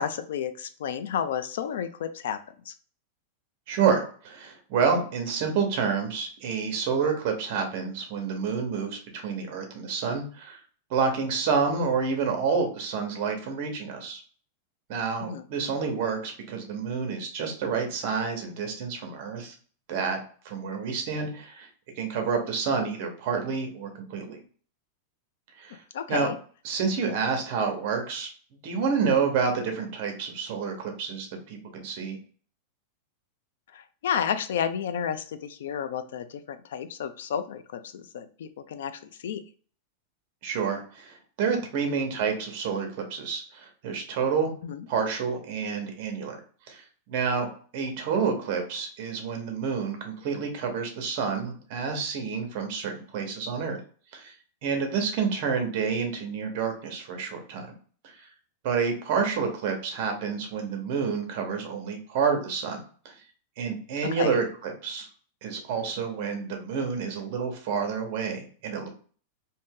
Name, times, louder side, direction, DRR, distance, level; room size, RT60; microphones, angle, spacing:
voice 1, 0.0-2.4 2.7-2.8 15.2-15.4 25.9-26.4 33.7-39.4 44.6-44.9 64.0-64.4, left 8 dB, 75° left, 11 dB, 0.4 m, -31 dB
voice 2, 3.7-10.6 10.9-14.2 14.9-19.5 19.9-20.2 20.4-21.7 22.0-24.4 25.6-25.8 26.1-26.3 26.6-28.3 28.6-32.2 40.4-44.5 44.9-46.4 46.7-47.5 47.7-53.8 54.1-54.3 54.6-57.7 58.0-58.1 58.6-62.8 63.0-63.1 63.6-65.1 65.4-68.9, right 5 dB, 40° right, 4 dB, 0.9 m, -29 dB
2.7 x 2.6 x 3.6 m, 0.43 s
supercardioid pair, 175°, 0 cm